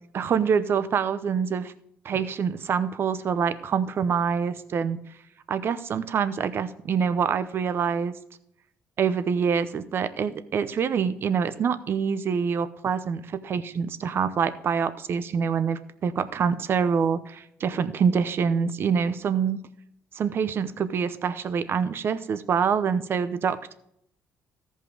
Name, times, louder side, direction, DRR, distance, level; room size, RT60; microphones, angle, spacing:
voice 1, 0.1-1.7 2.0-5.0 5.5-8.2 9.0-19.6 20.1-23.7, right 6 dB, 55° right, 13 dB, 0.8 m, -26 dB
14.0 x 5.5 x 4.8 m, 0.74 s
cardioid pair, 85°, 5 cm